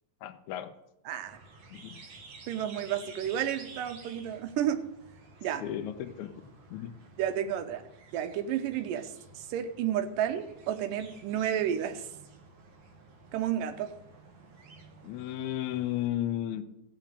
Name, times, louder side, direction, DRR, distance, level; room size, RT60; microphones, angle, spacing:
voice 1, 0.2-0.7 1.7-2.0 5.6-6.3 6.7-6.9 15.0-16.6, left 12 dB, 75° left, 7 dB, 2.0 m, -34 dB
voice 2, 1.1-1.4 2.5-4.8 5.4-5.6 7.2-7.8 8.1-12.1 13.3-13.9, right 10 dB, 90° right, 9 dB, 2.5 m, -31 dB
sound 1, 1.2-16.1, right 3 dB, 50° right, 1.9 m, -52 dB
15.5 x 5.9 x 6.4 m, 0.85 s
omnidirectional pair, 3.7 m